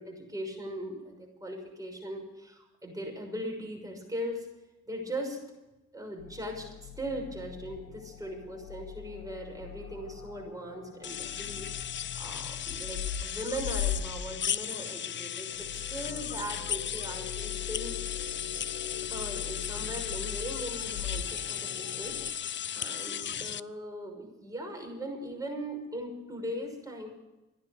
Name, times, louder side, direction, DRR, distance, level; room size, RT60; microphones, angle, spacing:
voice 1, 0.0-4.5 4.9-5.4 5.9-11.7 12.0-18.0 19.1-22.2 22.7-27.1, equal, 10° right, 1 dB, 6.3 m, -39 dB
sound 1, 6.2-22.3, left 10 dB, 85° left, 1.3 m, -41 dB
sound 2, 11.0-23.6, left 9 dB, 40° left, 0.5 m, -36 dB
15.0 x 10.5 x 8.3 m, 0.99 s
cardioid pair, 90°, 30 cm